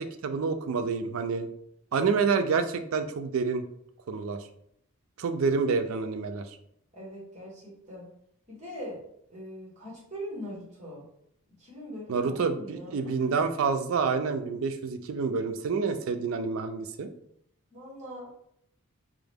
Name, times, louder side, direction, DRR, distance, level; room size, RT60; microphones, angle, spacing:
voice 1, 0.0-1.5 1.9-3.6 4.1-4.4 5.2-6.6 12.1-17.1, right 5 dB, 70° right, 8 dB, 0.4 m, -28 dB
voice 2, 6.9-8.1 8.5-9.0 9.3-11.1 11.6-13.1 17.7-18.3, equal, 30° right, -4 dB, 1.3 m, -41 dB
4.6 x 2.1 x 3.4 m, 0.72 s
head